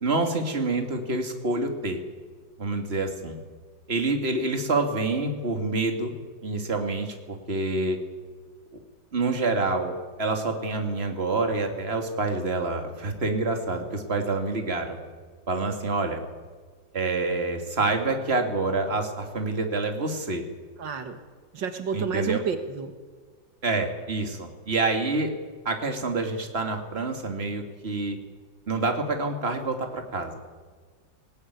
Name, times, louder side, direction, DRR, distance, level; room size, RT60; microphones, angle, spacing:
voice 1, 0.0-2.0 2.6-3.4 3.9-6.1 6.4-8.0 8.7-8.8 9.1-9.9 10.2-15.0 15.5-16.2 16.9-20.4 21.9-22.4 23.6-25.3 25.6-28.2 28.7-30.3, right 3 dB, 35° right, 5 dB, 2.6 m, -27 dB
voice 2, 20.8-21.2 21.5-22.9, right 6 dB, 75° right, 8 dB, 2.2 m, -30 dB
19.0 x 19.0 x 9.5 m, 1.5 s
omnidirectional pair, 2.0 m